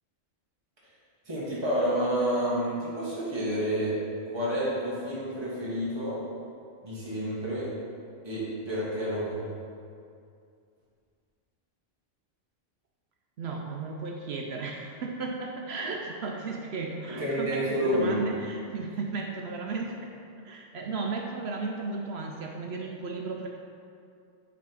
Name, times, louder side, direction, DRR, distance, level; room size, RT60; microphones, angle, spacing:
voice 1, 1.2-3.9 4.3-6.2 6.8-7.7 8.2-9.4 17.1-18.2, equal, 20° right, -9 dB, 1.7 m, -29 dB
voice 2, 13.4-23.5, right 3 dB, 65° right, 1 dB, 0.8 m, -35 dB
10.0 x 3.6 x 4.6 m, 2.4 s
omnidirectional pair, 1.3 m